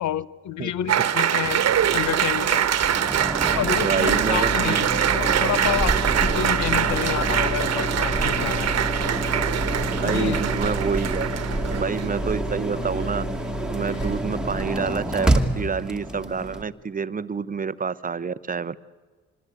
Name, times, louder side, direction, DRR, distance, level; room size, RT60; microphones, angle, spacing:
voice 1, 0.0-1.6 1.9-2.6 3.5-8.7 10.0-10.4, left 11 dB, 70° left, 0.8 m, -29 dB
sound 1, 0.8-14.1, left 3 dB, 85° left, 5.0 m, -53 dB
Applause, 0.9-12.2, right 10 dB, 55° right, 1.2 m, -24 dB
sound 2, 1.4-16.6, right 1 dB, ahead, 1.9 m, -27 dB
voice 2, 3.8-5.0 7.8-8.0 10.0-11.3 11.7-13.2 13.7-15.3 15.6-18.8, right 5 dB, 30° right, 0.7 m, -28 dB
26.0 x 20.5 x 8.2 m
cardioid pair, 90°, 30 cm